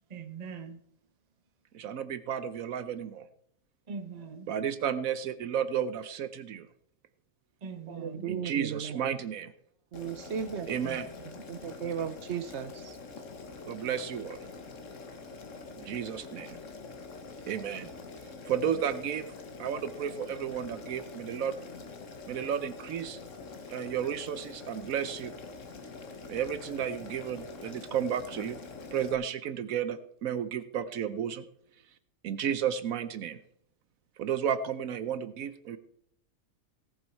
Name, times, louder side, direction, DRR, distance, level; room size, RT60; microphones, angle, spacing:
voice 1, 0.1-0.8 3.9-4.5 7.6-8.3 10.8-11.4, right 5 dB, 35° right, 0.9 m, -42 dB
voice 2, 1.7-3.3 4.5-6.7 8.3-9.5 10.7-11.1 13.7-14.4 15.8-16.6 17.5-17.9 18.4-19.3 19.6-21.5 22.3-23.2 23.7-25.3 26.3-28.6 28.9-31.4 32.2-33.4 34.2-35.8, right 8 dB, 75° right, 1.1 m, -32 dB
voice 3, 7.9-9.2 9.9-10.7 11.5-13.0, right 7 dB, 60° right, 1.1 m, -36 dB
Boiling, 9.9-29.1, left 4 dB, 60° left, 1.6 m, -45 dB
18.0 x 7.2 x 4.4 m
omnidirectional pair, 1.5 m